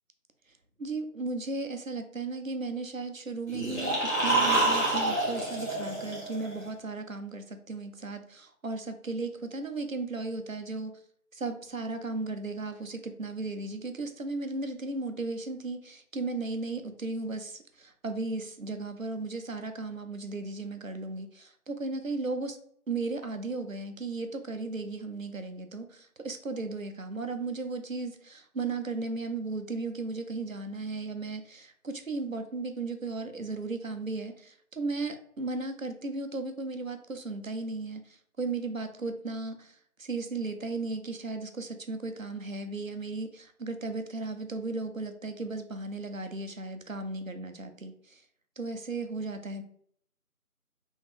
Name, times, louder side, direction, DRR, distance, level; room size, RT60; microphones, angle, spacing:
voice 1, 0.8-10.9 11.3-22.6 22.9-48.2 48.6-49.6, right 3 dB, 60° right, 7 dB, 0.6 m, -35 dB
sound 1, 3.5-6.6, right 2 dB, 50° left, 1.6 m, -27 dB
3.6 x 3.0 x 3.6 m, 0.64 s
figure-of-eight pair, 175°, 45 cm